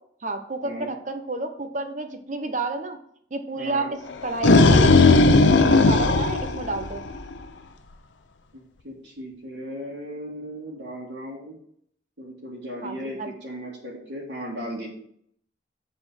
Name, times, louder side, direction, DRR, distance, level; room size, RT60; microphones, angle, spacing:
voice 1, 0.2-3.0 3.3-3.8 4.2-5.2 5.6-7.0 12.8-13.3, right 3 dB, 40° right, 7 dB, 0.9 m, -30 dB
voice 2, 3.6-3.9 8.5-11.5 12.2-14.9, equal, 75° right, -5 dB, 2.2 m, -36 dB
sound 1, 4.1-7.3, left 3 dB, 80° left, 0.7 m, -16 dB
7.5 x 4.3 x 6.3 m, 0.67 s
head